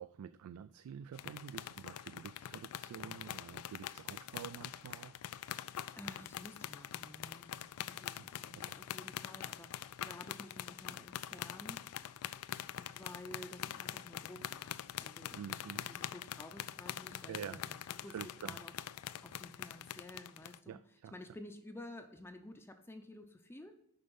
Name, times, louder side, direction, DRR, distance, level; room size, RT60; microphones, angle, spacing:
voice 1, 0.0-5.2 8.1-8.2 8.5-8.7 15.4-15.9 17.3-17.6 18.1-18.6 20.7-21.1, right 8 dB, 80° right, 13 dB, 0.3 m, -48 dB
sound 1, 1.1-20.6, left 11 dB, 75° left, 0.3 m, -44 dB
voice 2, 5.9-11.8 12.8-18.7 19.2-20.8 21.1-23.8, left 1 dB, 10° left, 5 dB, 0.5 m, -52 dB
6.8 x 5.3 x 5.4 m, 0.82 s
head